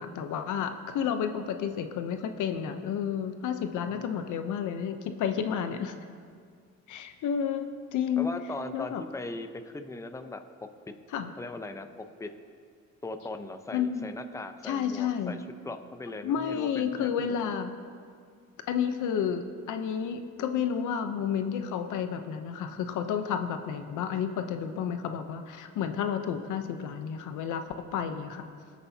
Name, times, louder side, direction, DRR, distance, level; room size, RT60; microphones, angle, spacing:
voice 1, 0.0-6.0 6.9-8.3 8.7-9.0 11.1-11.3 13.7-14.1 14.6-15.3 16.2-17.7 18.7-27.6 27.9-28.5, left 8 dB, 80° left, 8 dB, 0.8 m, -31 dB
voice 2, 3.8-4.2 8.2-10.4 11.4-11.9 12.2-12.3 13.0-17.4, left 2 dB, 10° left, 8 dB, 0.7 m, -39 dB
20.5 x 8.3 x 2.8 m, 2.1 s
cardioid pair, 90°, 30 cm